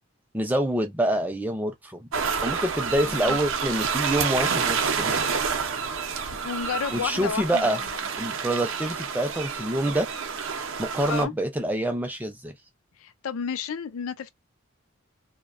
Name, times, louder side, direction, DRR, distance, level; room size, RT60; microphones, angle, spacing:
voice 1, 0.3-2.1 2.4-5.3 6.9-7.8 8.2-10.1 10.8-12.5, right 1 dB, 10° right, 0.4 m, -26 dB
sound 1, 2.1-11.2, right 6 dB, 60° right, 0.5 m, -29 dB
voice 2, 3.0-3.4 6.4-7.8 11.0-11.3 13.0-14.3, left 6 dB, 80° left, 0.4 m, -31 dB
2.6 x 2.1 x 2.4 m
head